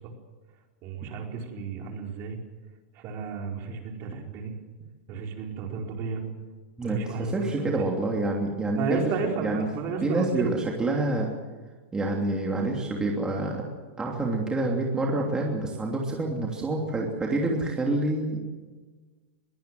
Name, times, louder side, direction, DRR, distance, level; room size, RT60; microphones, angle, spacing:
voice 1, 0.8-2.4 2.9-4.5 5.1-6.2 6.8-7.9 8.8-10.6, right 5 dB, 40° right, 2 dB, 4.6 m, -32 dB
voice 2, 6.8-9.1 9.4-9.7 10.0-11.3 11.9-13.6 14.0-18.4, right 2 dB, 10° right, -1 dB, 3.0 m, -27 dB
22.0 x 17.5 x 7.9 m, 1.3 s
supercardioid pair, 145°, 6 cm